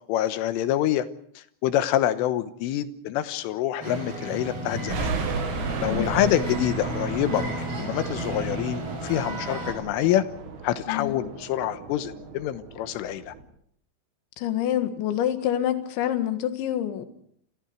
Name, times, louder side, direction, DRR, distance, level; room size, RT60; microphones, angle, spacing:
voice 1, 0.1-1.1 1.4-5.1 5.8-10.2 10.6-13.3, left 12 dB, 90° left, 11 dB, 3.7 m, -26 dB
sound 1, 3.8-9.7, right 1 dB, 30° right, 7.3 m, -33 dB
sound 2, 4.9-13.4, right 4 dB, 60° right, 4.5 m, -35 dB
voice 2, 5.8-6.3 10.9-11.2 14.4-17.1, left 11 dB, 70° left, 8 dB, 3.9 m, -27 dB
28.5 x 24.5 x 4.6 m, 0.65 s
omnidirectional pair, 5.6 m